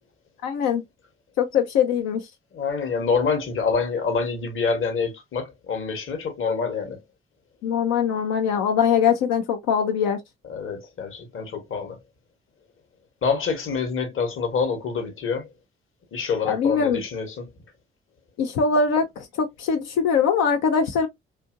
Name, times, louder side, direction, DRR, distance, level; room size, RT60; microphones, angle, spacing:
voice 1, 0.4-0.8 1.4-2.2 7.6-10.2 16.5-17.0 18.4-19.1 19.4-21.1, left 6 dB, 65° left, 0.5 m, -22 dB
voice 2, 2.5-7.0 10.5-12.0 13.2-15.5 16.1-17.5, left 5 dB, 45° left, 1.1 m, -26 dB
2.7 x 2.5 x 2.5 m
figure-of-eight pair, 40°, 29 cm